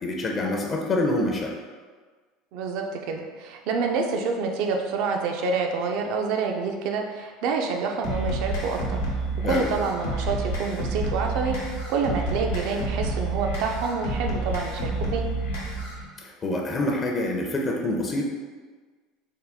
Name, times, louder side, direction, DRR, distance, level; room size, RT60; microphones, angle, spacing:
voice 1, 0.0-1.5 9.4-9.7 16.2-18.2, left 2 dB, 30° left, 1 dB, 0.5 m, -26 dB
voice 2, 2.5-9.0 9.4-15.3, right 4 dB, 65° right, 3 dB, 0.5 m, -27 dB
sound 1, 8.0-16.0, right 2 dB, 90° left, 1.0 m, -29 dB
3.7 x 2.2 x 3.5 m, 1.4 s
supercardioid pair, 95°, 0 cm